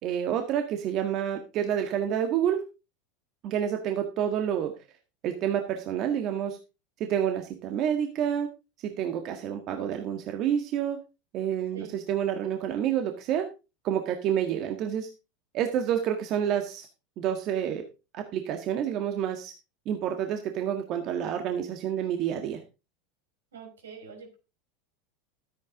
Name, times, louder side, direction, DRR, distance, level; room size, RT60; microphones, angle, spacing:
voice 1, 0.0-2.6 3.4-4.7 5.2-6.6 7.0-8.5 8.8-11.0 11.3-13.5 13.8-15.1 15.5-16.9 17.2-17.8 18.1-19.5 19.8-22.6, right 9 dB, 50° right, 6 dB, 1.7 m, -28 dB
voice 2, 23.5-24.4, right 5 dB, 80° right, 3 dB, 5.1 m, -44 dB
13.5 x 9.0 x 3.7 m, 0.30 s
hypercardioid pair, 85°, 0 cm